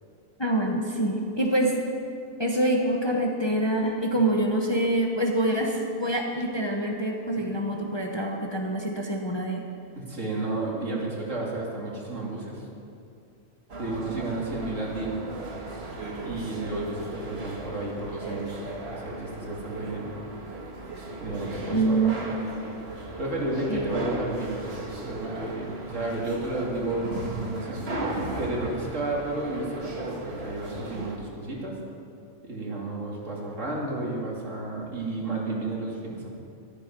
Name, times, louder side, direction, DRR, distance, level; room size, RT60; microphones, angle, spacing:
voice 1, 0.4-1.7 2.4-9.6 21.7-22.1 23.7-24.0, right 1 dB, 20° left, 0 dB, 1.0 m, -26 dB
voice 2, 10.0-12.7 13.8-15.2 16.2-18.5 18.9-20.1 21.2-22.1 23.2-27.8 28.4-31.8 32.4-36.3, right 2 dB, 65° right, -3 dB, 2.9 m, -32 dB
sound 1, 13.7-31.2, right 2 dB, 50° right, 1.8 m, -37 dB
13.5 x 13.0 x 5.3 m, 2.5 s
omnidirectional pair, 1.4 m